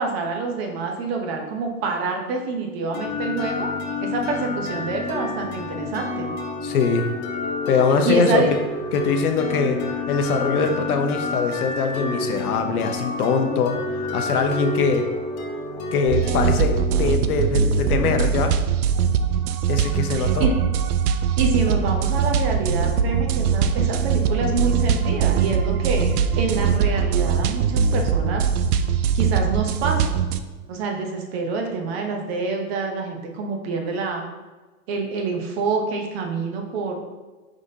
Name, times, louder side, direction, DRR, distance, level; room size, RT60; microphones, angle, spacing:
voice 1, 0.0-3.7 4.0-6.3 8.0-8.5 20.2-20.5 21.4-26.1 26.4-28.5 29.1-30.2 30.7-34.2 34.9-36.9, right 4 dB, 45° right, 2 dB, 0.9 m, -26 dB
sound 1, 2.9-18.6, left 3 dB, 45° left, 0.9 m, -30 dB
voice 2, 6.6-7.1 7.7-8.5 8.9-9.8 10.1-13.8 14.1-15.0 15.9-18.5 19.7-20.5, left 5 dB, 80° left, 5 dB, 0.8 m, -22 dB
sound 2, 16.1-30.4, right 7 dB, 85° right, 0.5 m, -21 dB
5.1 x 3.7 x 2.7 m, 1.2 s
hypercardioid pair, 135°, 44 cm